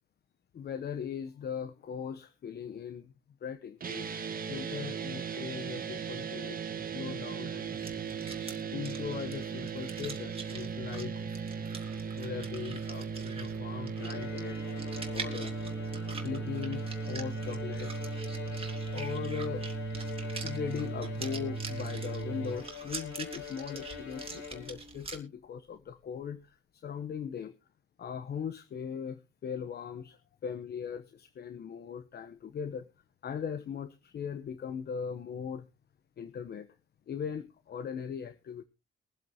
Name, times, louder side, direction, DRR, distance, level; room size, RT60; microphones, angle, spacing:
voice 1, 0.5-3.1 3.4-4.1 4.5-7.8 8.7-11.4 12.1-14.6 15.1-15.5 16.0-17.9 18.9-19.7 20.2-27.5 28.0-32.9 33.2-35.6 36.2-36.7 37.1-38.6, left 7 dB, 55° left, 12 dB, 1.0 m, -39 dB
sound 1, 3.8-22.6, right 5 dB, 45° right, 1.6 m, -37 dB
sound 2, 7.7-25.2, right 4 dB, 30° right, 3.0 m, -46 dB
Bowed string instrument, 13.9-25.0, left 4 dB, 90° left, 8.0 m, -44 dB
22.5 x 7.9 x 2.9 m, 0.28 s
cardioid pair, 90°, 20 cm